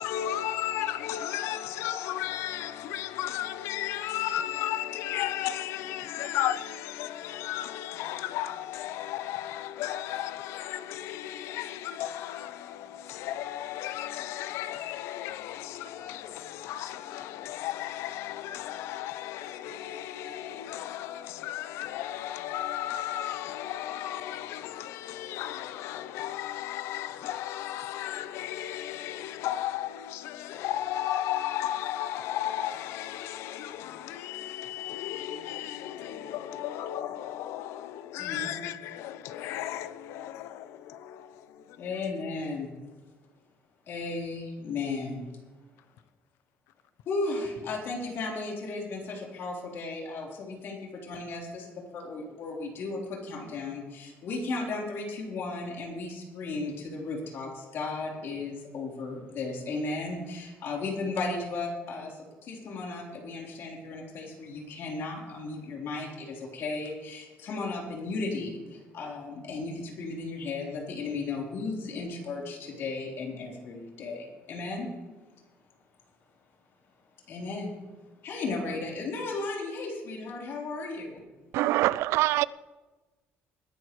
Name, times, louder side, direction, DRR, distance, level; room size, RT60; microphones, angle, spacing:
voice 1, 0.0-41.9, left 12 dB, 85° left, 0.7 m, -34 dB
voice 2, 38.2-38.6 41.8-42.7 43.9-45.2 47.1-74.9 77.3-77.7 78.2-81.2, left 3 dB, 60° left, 3.7 m, -35 dB
voice 3, 81.5-82.5, right 16 dB, 85° right, 0.3 m, -24 dB
20.5 x 11.0 x 3.1 m
cardioid pair, 135°, 4 cm